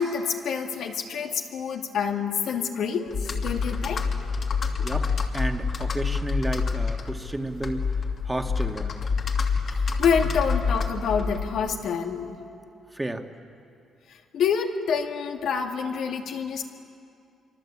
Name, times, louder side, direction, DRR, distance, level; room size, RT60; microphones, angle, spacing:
voice 1, 0.0-4.1 9.8-12.4 14.3-16.6, left 6 dB, 75° left, 2 dB, 2.5 m, -27 dB
Computer keyboard, 3.1-11.7, left 5 dB, 50° left, 2.4 m, -27 dB
voice 2, 4.8-7.9 8.3-9.2 12.9-13.3, right 1 dB, 10° right, 5 dB, 1.9 m, -32 dB
26.5 x 24.5 x 8.6 m, 2.5 s
cardioid pair, 90°, 0 cm